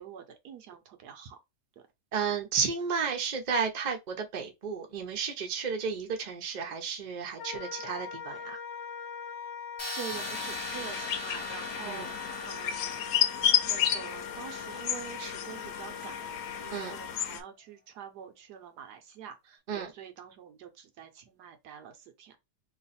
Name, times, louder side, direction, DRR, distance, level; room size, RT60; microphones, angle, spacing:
voice 1, 0.0-1.4 9.9-13.1 13.6-22.4, right 8 dB, 80° right, 1.3 m, -46 dB
voice 2, 2.1-8.6 11.8-12.1 16.7-17.0 19.7-19.9, right 6 dB, 40° right, 0.7 m, -32 dB
Wind instrument woodwind instrument, 7.4-17.2, left 6 dB, 55° left, 0.8 m, -42 dB
sound 1, 9.8-15.6, left 1 dB, 40° left, 1.2 m, -41 dB
sound 2, 10.1-17.4, left 10 dB, 80° left, 1.1 m, -32 dB
3.1 x 2.4 x 4.1 m
omnidirectional pair, 1.7 m